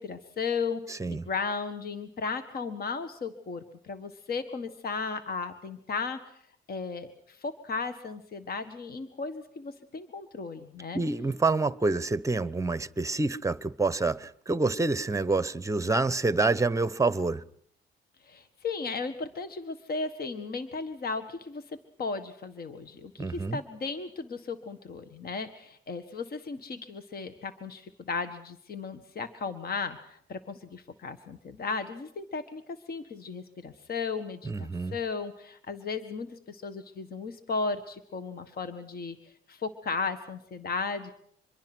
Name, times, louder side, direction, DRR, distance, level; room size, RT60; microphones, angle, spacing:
voice 1, 0.0-6.4 6.7-11.0 18.2-41.1, left 4 dB, 50° left, 1.6 m, -35 dB
voice 2, 0.9-1.3 10.9-17.4 23.2-23.6 34.4-35.0, right 3 dB, 15° right, 0.9 m, -27 dB
25.5 x 22.0 x 6.2 m
cardioid pair, 90°, 20 cm